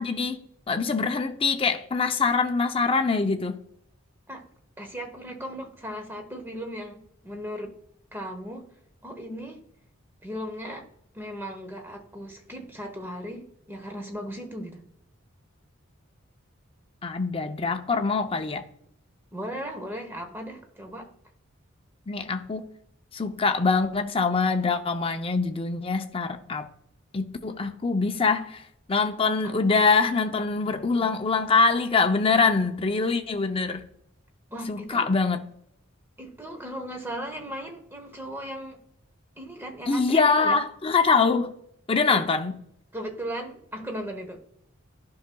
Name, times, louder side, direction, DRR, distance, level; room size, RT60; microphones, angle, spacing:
voice 1, 0.0-3.6 17.0-18.7 22.1-22.7 23.1-26.7 27.1-33.9 34.7-35.4 39.9-41.6 41.9-42.5, left 4 dB, 25° left, 0.5 m, -24 dB
voice 2, 4.8-7.8 8.1-9.7 10.2-10.9 11.1-14.8 19.3-21.1 29.4-29.5 34.5-35.1 36.2-38.8 39.4-40.6 42.1-42.2 42.9-44.4, equal, 10° right, 0.9 m, -37 dB
11.0 x 5.6 x 2.3 m
head